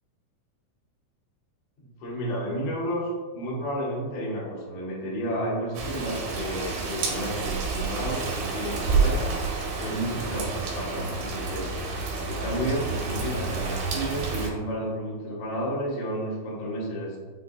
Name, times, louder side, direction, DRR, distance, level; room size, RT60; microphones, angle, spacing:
voice 1, 1.8-9.2 9.8-11.7 12.2-17.2, equal, 65° left, -6 dB, 2.1 m, -31 dB
Rain, 5.7-14.5, right 4 dB, 90° right, 2.5 m, -29 dB
5.7 x 2.2 x 2.6 m, 1.5 s
omnidirectional pair, 4.1 m